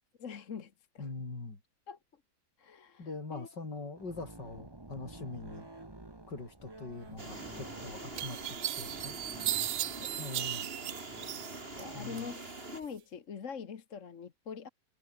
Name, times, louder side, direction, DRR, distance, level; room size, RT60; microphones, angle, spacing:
voice 1, 0.2-1.1 1.9-2.0 2.6-3.5 9.9-10.4 11.8-14.7, left 6 dB, 50° left, 1.6 m, -44 dB
voice 2, 1.0-1.6 3.0-5.7 6.3-9.2 10.2-10.7 11.9-12.3, left 3 dB, 90° left, 5.3 m, -43 dB
sound 1, 4.0-12.2, right 2 dB, 15° right, 1.8 m, -51 dB
sound 2, 7.2-12.8, right 2 dB, 35° right, 3.9 m, -44 dB
sound 3, 7.4-7.5 8.2-11.8 12.2-12.9, right 13 dB, 85° right, 0.6 m, -36 dB
omnidirectional pair, 1.8 m